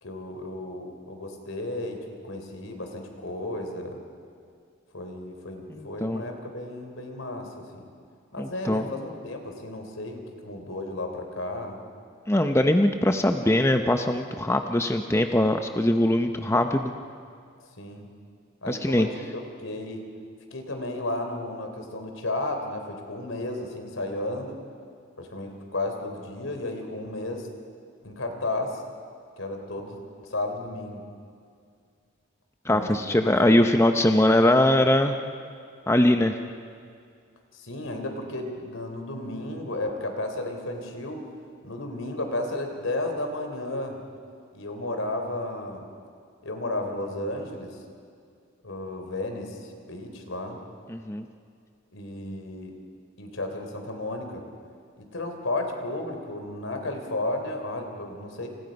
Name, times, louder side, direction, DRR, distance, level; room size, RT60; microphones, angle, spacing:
voice 1, 0.0-4.0 4.9-7.9 8.3-11.8 17.8-18.1 18.6-20.1 20.5-24.6 25.2-27.5 28.0-28.8 29.4-31.0 32.7-33.3 37.5-41.3 41.6-44.0 44.5-45.9 46.4-47.8 48.6-50.6 51.9-52.8 53.2-54.5 55.0-58.5, left 2 dB, 80° left, 4 dB, 3.6 m, -33 dB
voice 2, 5.7-6.2 8.4-8.9 12.3-16.9 18.7-19.1 32.7-35.2 35.9-36.4 50.9-51.2, left 1 dB, 15° left, 6 dB, 0.7 m, -22 dB
30.0 x 28.0 x 5.4 m, 2.3 s
head